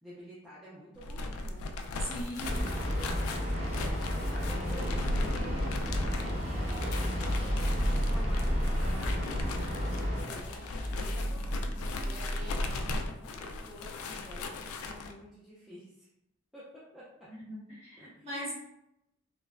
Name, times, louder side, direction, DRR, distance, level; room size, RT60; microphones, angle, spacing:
voice 1, 0.0-1.7 3.5-4.0 4.3-5.7 6.0-16.1 16.5-17.3 18.0-18.5, equal, ahead, -10 dB, 0.4 m, -50 dB
sound 1, 0.9-15.1, left 2 dB, 85° left, 0.3 m, -38 dB
voice 2, 2.0-2.6 17.3-18.5, equal, 30° right, -8 dB, 1.2 m, -40 dB
Train, 2.4-10.2, equal, 90° right, 1.5 m, -33 dB
sound 2, 4.7-13.0, equal, 60° right, 0.7 m, -34 dB
3.0 x 2.0 x 2.3 m, 0.83 s
head